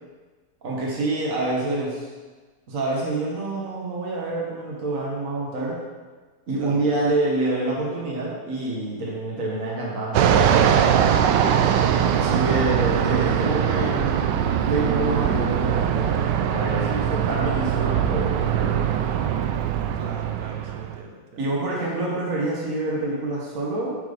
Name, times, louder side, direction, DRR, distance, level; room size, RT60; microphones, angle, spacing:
voice 1, 0.6-2.1 2.7-5.8 6.5-11.0 12.1-14.2 14.6-18.8 21.4-24.0, right 2 dB, 40° right, -4 dB, 1.8 m, -27 dB
voice 2, 6.6-7.1 11.4-11.9 19.9-21.5, right 3 dB, 60° right, 2 dB, 1.4 m, -41 dB
Fixed-wing aircraft airplane, 10.1-21.0, right 9 dB, 75° right, 1.0 m, -21 dB
7.7 x 5.8 x 5.2 m, 1.3 s
omnidirectional pair, 2.4 m